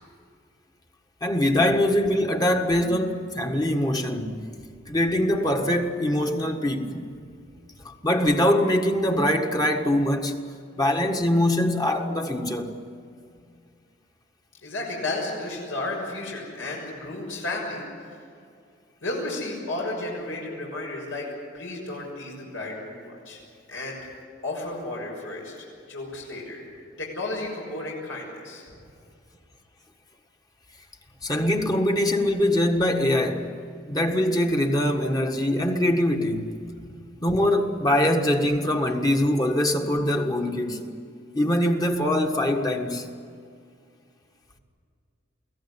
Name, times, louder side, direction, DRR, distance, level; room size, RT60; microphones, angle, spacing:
voice 1, 1.2-4.5 4.9-7.1 7.8-10.4 10.8-12.8 31.2-33.5 33.9-36.5 37.2-40.9 41.3-43.1, left 1 dB, 20° left, 1.6 m, -23 dB
voice 2, 14.6-17.8 19.0-23.4 23.7-24.0 24.4-25.6 25.9-26.6 27.0-28.6 36.7-36.9, left 2 dB, 80° left, 6.5 m, -33 dB
24.0 x 17.0 x 10.0 m
head